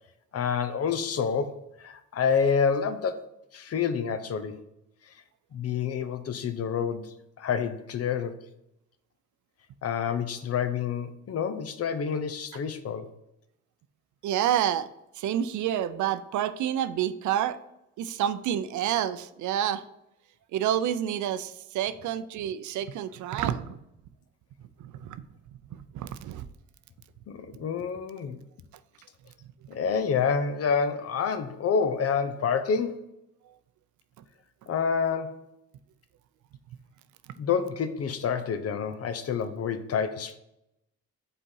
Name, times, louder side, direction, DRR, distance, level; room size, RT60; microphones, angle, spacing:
voice 1, 0.3-4.6 5.5-8.4 9.8-13.1 27.3-28.4 29.7-33.0 34.7-35.5 37.4-40.4, left 6 dB, 55° left, 11 dB, 0.7 m, -28 dB
voice 2, 14.2-14.9 15.2-17.6 18.0-19.8 20.5-23.8 24.8-25.2 25.9-26.5, right 10 dB, 75° right, 13 dB, 0.6 m, -28 dB
5.5 x 4.2 x 5.5 m, 0.84 s
cardioid pair, 90°, 30 cm